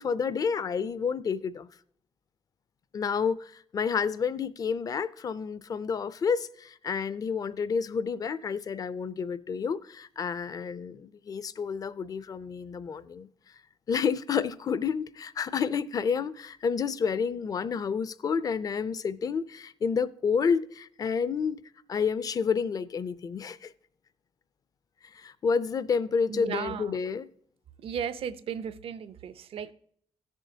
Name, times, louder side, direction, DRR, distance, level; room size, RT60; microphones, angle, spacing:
voice 1, 0.0-1.7 2.9-13.3 13.9-21.6 21.9-23.7 25.1-27.3, left 6 dB, 40° left, 0.4 m, -29 dB
voice 2, 26.3-27.0 27.8-29.7, right 8 dB, 75° right, 0.6 m, -35 dB
17.0 x 7.0 x 2.7 m
wide cardioid pair, 160°, 10 cm